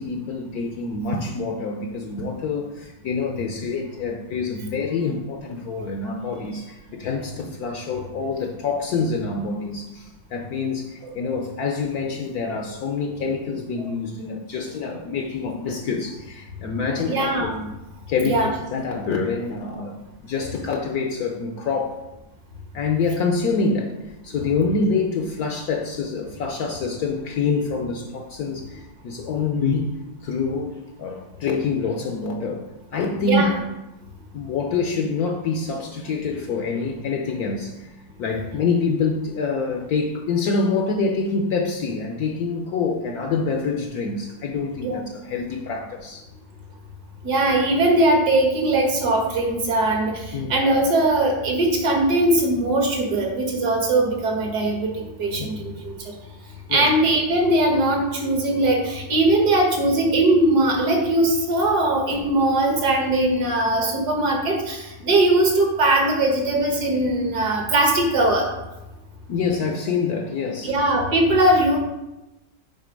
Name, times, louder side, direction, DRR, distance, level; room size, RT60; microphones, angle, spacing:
voice 1, 0.0-17.5 18.1-20.0 20.2-22.0 22.7-29.9 30.2-30.7 31.0-32.7 32.9-33.5 34.3-37.9 38.2-46.2 50.3-50.5 55.3-55.5 56.7-56.9 69.3-70.7, left 4 dB, 65° left, 3 dB, 1.1 m, -26 dB
voice 2, 17.1-17.7 18.2-18.5 33.2-33.5 44.8-45.0 47.2-55.9 56.7-68.5 70.6-71.8, right 1 dB, 65° right, 1 dB, 1.9 m, -20 dB
8.3 x 3.9 x 5.2 m, 0.97 s
omnidirectional pair, 1.9 m